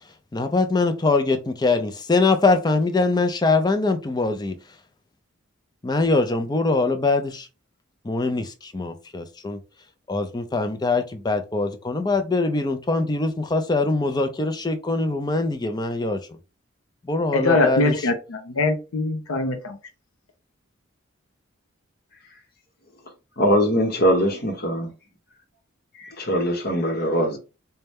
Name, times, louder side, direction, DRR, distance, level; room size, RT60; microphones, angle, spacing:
voice 1, 0.3-4.6 5.8-7.5 8.0-9.6 10.1-16.2 17.0-17.9, left 3 dB, 20° left, 0.4 m, -23 dB
voice 2, 17.3-19.8, left 2 dB, 85° left, 0.6 m, -22 dB
voice 3, 23.4-24.9 26.2-27.4, equal, 50° left, 0.9 m, -21 dB
4.1 x 2.2 x 3.4 m
head